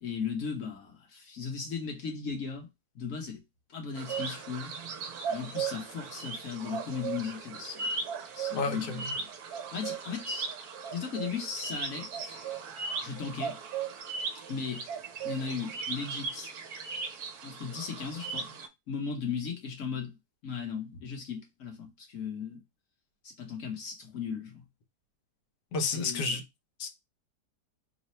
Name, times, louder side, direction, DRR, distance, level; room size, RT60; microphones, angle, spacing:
voice 1, 0.0-2.7 2.9-3.4 3.7-4.7 5.3-7.8 8.3-10.5 10.9-12.1 13.0-13.6 14.5-14.8 15.2-16.5 17.4-18.5 18.9-20.1 20.4-22.6 23.2-24.6 25.9-26.3, left 6 dB, 55° left, 1.2 m, -37 dB
sound 1, 3.9-18.7, right 5 dB, 70° right, 1.1 m, -37 dB
voice 2, 8.5-9.1 25.7-26.4 26.8-26.9, left 4 dB, 80° left, 1.3 m, -31 dB
3.2 x 2.0 x 4.1 m
omnidirectional pair, 1.8 m